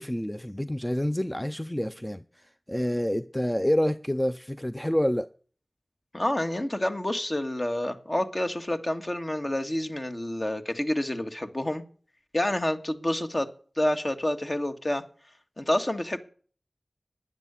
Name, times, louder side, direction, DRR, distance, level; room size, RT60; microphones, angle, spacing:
voice 1, 0.0-5.3, equal, 10° left, 0.6 m, -28 dB
voice 2, 6.1-11.8 12.3-13.5 13.8-15.0 15.6-16.2, left 1 dB, 40° left, 1.9 m, -28 dB
12.0 x 10.5 x 8.4 m
wide cardioid pair, 60°, 0 cm